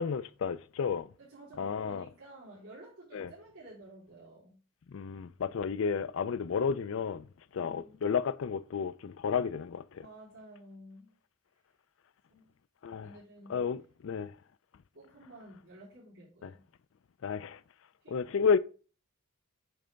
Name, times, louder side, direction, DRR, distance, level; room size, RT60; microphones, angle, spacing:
voice 1, 0.0-1.1 1.6-2.1 3.1-3.3 4.9-7.3 7.5-10.0 12.8-13.1 13.5-14.3 16.4-16.5 17.2-17.6 18.1-18.6, left 6 dB, 60° left, 0.4 m, -32 dB
voice 2, 1.2-4.6 7.5-8.0 10.0-11.1 12.3-12.5 13.0-13.6 14.9-16.6 18.0-18.2, right 1 dB, 80° right, 3.3 m, -52 dB
8.8 x 3.4 x 5.1 m
head